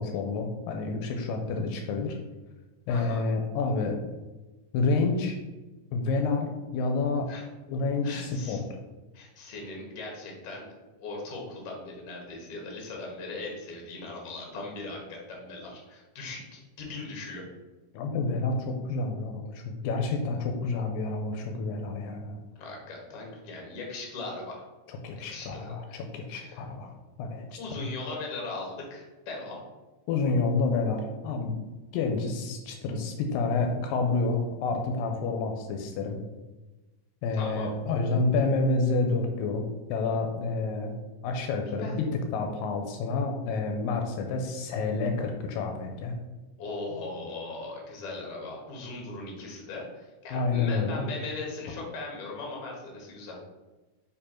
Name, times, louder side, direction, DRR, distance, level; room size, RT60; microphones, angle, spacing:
voice 1, 0.0-2.2 2.9-4.0 4.7-5.4 5.9-7.3 7.7-8.6 17.9-22.4 24.9-27.9 30.1-31.5 31.9-36.2 37.2-40.9 41.2-46.1 50.3-51.1, left 3 dB, 85° left, 4 dB, 2.3 m, -29 dB
voice 2, 2.9-3.2 7.3-7.5 8.0-8.6 9.1-10.7 11.0-17.4 22.6-24.6 25.2-26.0 26.3-26.6 27.6-29.6 37.4-37.7 41.8-42.0 46.6-53.4, left 3 dB, 50° left, -1 dB, 2.1 m, -39 dB
5.2 x 4.5 x 4.3 m, 1.1 s
omnidirectional pair, 4.0 m